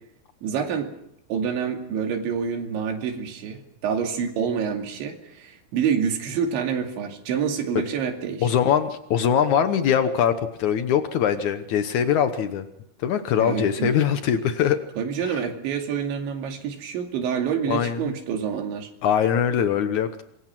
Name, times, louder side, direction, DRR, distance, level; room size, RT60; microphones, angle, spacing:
voice 1, 0.4-0.9 1.3-8.5 13.4-14.0 15.0-18.9, right 7 dB, 85° right, 3 dB, 4.9 m, -27 dB
voice 2, 8.4-12.6 13.0-14.8 15.2-15.4 17.7-18.1 19.0-20.2, left 8 dB, 85° left, 9 dB, 1.7 m, -22 dB
26.5 x 23.0 x 6.1 m, 0.76 s
omnidirectional pair, 5.1 m